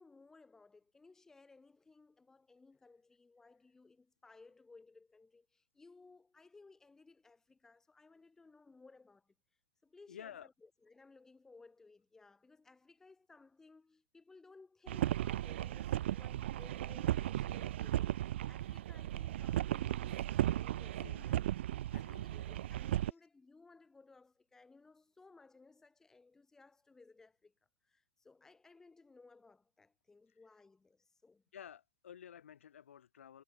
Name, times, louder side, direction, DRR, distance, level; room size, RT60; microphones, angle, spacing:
voice 1, 0.0-9.3 9.8-21.5 22.0-27.5 27.8-31.4, left 3 dB, 5° left, 7.0 m, -61 dB
voice 2, 10.1-10.5 21.0-21.4 21.9-22.3 23.1-23.2 30.3-30.4 31.5-33.4, left 9 dB, 85° left, 6.2 m, -53 dB
sound 1, 14.9-23.1, right 13 dB, 65° right, 0.5 m, -36 dB
hypercardioid pair, 155°, 7 cm